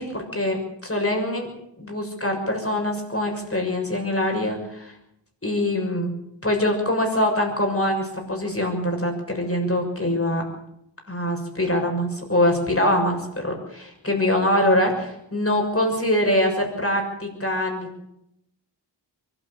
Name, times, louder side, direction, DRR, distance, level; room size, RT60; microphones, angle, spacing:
voice 1, 0.0-1.5 1.8-4.9 5.4-6.1 6.4-10.4 11.1-18.1, left 1 dB, 30° left, 2 dB, 6.7 m, -24 dB
23.0 x 13.0 x 8.6 m, 0.81 s
wide cardioid pair, 45°, 44 cm